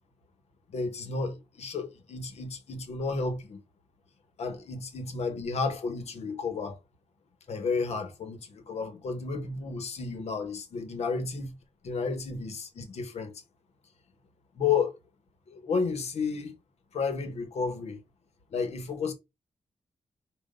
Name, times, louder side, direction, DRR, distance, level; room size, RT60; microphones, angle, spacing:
voice 1, 0.7-3.6 4.4-6.8 7.5-11.5 11.8-13.4 14.5-15.0 15.5-16.6 16.9-18.0 18.5-19.1, left 5 dB, 75° left, 1.2 m, -32 dB
5.2 x 2.5 x 3.8 m
wide cardioid pair, 150°, 11 cm